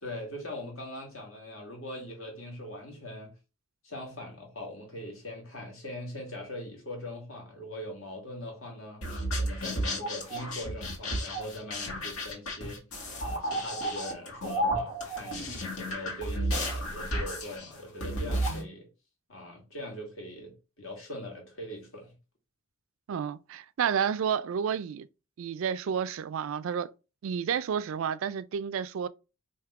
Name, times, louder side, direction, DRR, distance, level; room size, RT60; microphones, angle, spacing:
voice 1, 0.0-3.3 3.8-9.0 9.4-12.8 13.2-15.5 15.8-18.9 19.3-22.1, left 1 dB, 70° left, 1.9 m, -41 dB
sound 1, 9.0-18.6, equal, 90° left, 1.6 m, -32 dB
voice 2, 23.1-25.1 25.4-26.9 27.2-29.1, right 7 dB, 65° right, 0.3 m, -30 dB
3.5 x 2.7 x 4.6 m
head